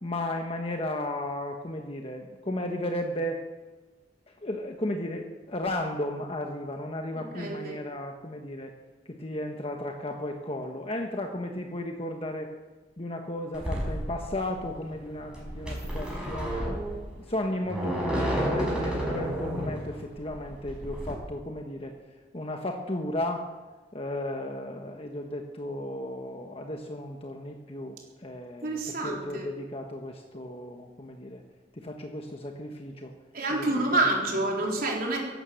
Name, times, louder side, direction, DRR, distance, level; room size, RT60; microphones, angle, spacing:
voice 1, 0.0-3.4 4.4-8.7 9.1-12.5 13.0-16.7 17.2-21.9 22.3-23.5 23.9-31.4 31.8-33.1 33.5-33.7, left 1 dB, 35° left, 3 dB, 1.2 m, -34 dB
voice 2, 7.1-7.8 28.6-29.5 33.3-35.2, right 2 dB, 55° right, -1 dB, 4.0 m, -28 dB
sound 1, 13.5-21.1, equal, 5° right, 5.6 m, -32 dB
15.5 x 12.0 x 7.8 m, 1.2 s
head